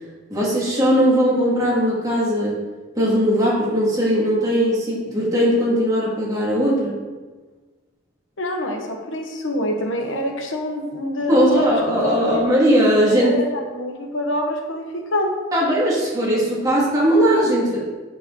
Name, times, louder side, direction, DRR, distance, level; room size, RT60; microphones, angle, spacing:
voice 1, 0.3-2.7 2.9-7.0 11.3-13.4 15.5-17.9, equal, 20° right, -5 dB, 2.1 m, -19 dB
voice 2, 8.4-12.4 13.0-15.3, left 1 dB, 75° left, 2 dB, 1.2 m, -26 dB
7.8 x 5.5 x 3.8 m, 1.3 s
head